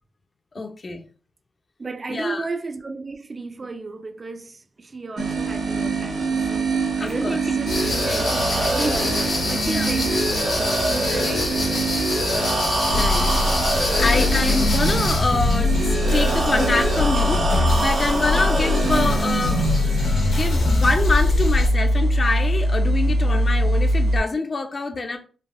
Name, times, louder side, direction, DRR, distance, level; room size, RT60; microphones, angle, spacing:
voice 1, 0.5-1.1 2.1-2.4 7.0-7.4 9.6-9.9 11.1-11.2 12.9-13.3 13.7-17.5 17.8-19.7 19.9-25.2, left 3 dB, 40° left, 0.4 m, -25 dB
voice 2, 1.8-11.8 18.3-18.5, right 3 dB, 35° right, 0.3 m, -33 dB
sound 1, 5.2-24.2, right 1 dB, 75° right, 0.9 m, -23 dB
sound 2, 7.7-15.2, left 1 dB, 60° left, 1.3 m, -26 dB
sound 3, 12.9-21.7, left 2 dB, 85° left, 0.8 m, -23 dB
3.3 x 2.3 x 2.2 m
wide cardioid pair, 110°, 0 cm